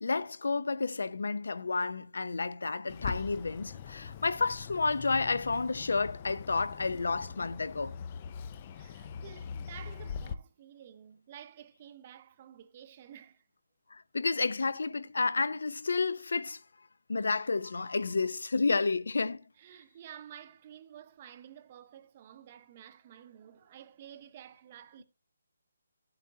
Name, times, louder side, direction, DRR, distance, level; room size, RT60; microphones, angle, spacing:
voice 1, 0.0-8.0 13.9-16.6 17.1-19.4, left 4 dB, 75° left, 0.7 m, -31 dB
Bird, 2.9-10.3, left 6 dB, 25° left, 0.4 m, -42 dB
voice 2, 8.7-13.4 19.6-25.0, right 10 dB, 25° right, 0.7 m, -51 dB
14.5 x 7.9 x 2.8 m
hypercardioid pair, 175°, 0 cm